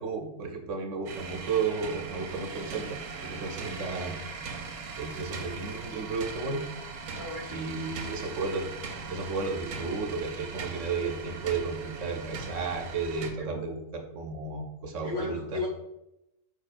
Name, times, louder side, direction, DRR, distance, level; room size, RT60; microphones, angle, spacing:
voice 1, 0.0-4.2 5.0-6.7 7.5-8.7 9.1-15.6, right 4 dB, 65° right, 3 dB, 0.9 m, -33 dB
sound 1, 1.1-13.3, right 4 dB, 90° right, 1.2 m, -40 dB
voice 2, 7.1-7.7 13.4-13.6 15.0-15.7, left 3 dB, 60° left, -1 dB, 0.5 m, -35 dB
4.7 x 4.5 x 2.4 m, 0.88 s
omnidirectional pair, 1.6 m